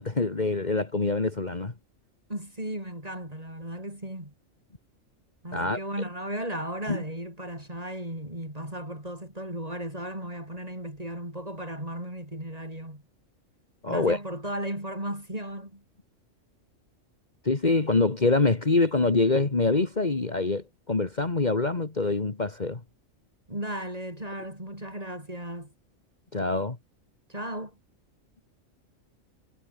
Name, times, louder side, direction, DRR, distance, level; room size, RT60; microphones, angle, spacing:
voice 1, 0.0-1.7 5.5-5.8 6.9-7.0 13.8-14.2 17.4-22.8 26.3-26.8, left 3 dB, 35° left, 2.0 m, -25 dB
voice 2, 2.3-4.3 5.4-13.0 13.9-15.8 23.5-25.7 27.3-27.8, right 1 dB, 30° right, 7.5 m, -35 dB
omnidirectional pair, 1.3 m